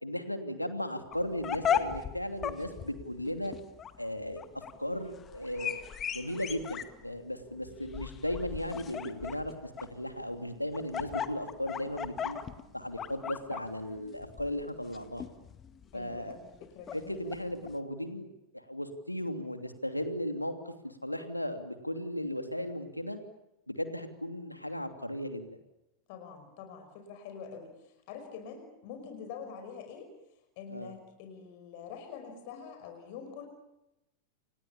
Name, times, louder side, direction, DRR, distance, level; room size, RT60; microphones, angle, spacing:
voice 1, 0.0-3.5 4.0-4.4 4.8-5.8 6.1-12.4 12.7-15.2 15.9-16.4 16.9-18.3 18.5-23.2 23.7-25.5 30.7-30.9, left 1 dB, 90° left, 7 dB, 2.9 m, -36 dB
sound 1, 1.1-17.7, left 8 dB, 25° left, 2.1 m, -38 dB
voice 2, 15.9-17.3 26.1-30.1 30.6-33.5, left 6 dB, 50° left, 6 dB, 5.4 m, -45 dB
30.0 x 27.0 x 7.2 m, 0.92 s
figure-of-eight pair, 90°, 0 cm